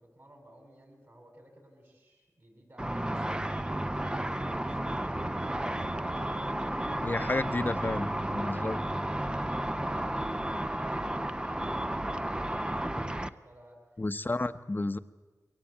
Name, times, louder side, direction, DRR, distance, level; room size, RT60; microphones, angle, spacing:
voice 1, 0.0-5.2 5.6-13.8, right 1 dB, 45° right, 1 dB, 7.9 m, -55 dB
Car / Traffic noise roadway noise / Engine, 2.8-13.3, right 1 dB, 15° right, 0.7 m, -32 dB
voice 2, 7.0-8.1 8.3-8.8 14.0-15.0, left 2 dB, 30° left, 12 dB, 0.9 m, -31 dB
22.5 x 18.0 x 8.6 m, 1.3 s
wide cardioid pair, 70°, 6 cm